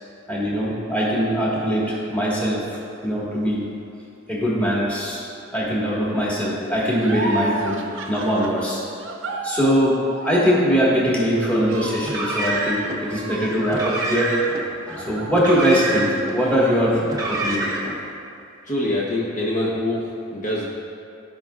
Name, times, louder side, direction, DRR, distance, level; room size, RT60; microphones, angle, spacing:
voice 1, 0.3-2.6 3.0-3.7 4.3-5.2 5.5-8.8 9.4-10.0 10.2-14.4 14.9-17.7, equal, 5° left, -7 dB, 1.5 m, -21 dB
sound 1, 7.0-16.0 16.4-17.4, right 2 dB, 65° right, 0.7 m, -34 dB
Car, 12.0-13.0 13.6-14.6 15.3-16.3 17.0-18.0, right 2 dB, 15° right, 0.8 m, -27 dB
voice 2, 18.6-20.7, left 1 dB, 40° left, -6 dB, 0.9 m, -25 dB
14.5 x 5.2 x 2.4 m, 2.5 s
head